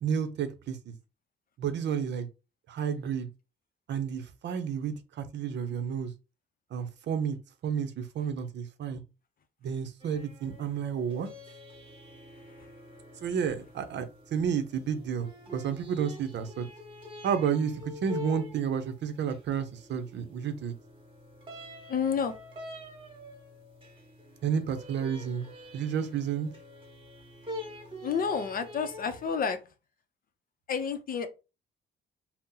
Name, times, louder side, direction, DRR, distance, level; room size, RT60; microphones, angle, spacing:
voice 1, 0.0-0.9 1.6-2.3 2.7-3.3 3.9-6.1 6.7-7.4 7.6-9.0 9.6-11.3 13.2-16.7 17.2-20.7 24.4-26.5, right 7 dB, 65° right, 0.6 m, -31 dB
sound 1, 10.0-29.3, left 2 dB, 25° right, 1.2 m, -46 dB
voice 2, 21.9-22.3 28.0-29.6 30.7-31.3, left 6 dB, 45° left, 0.5 m, -29 dB
2.7 x 2.0 x 3.7 m
cardioid pair, 90°, 20 cm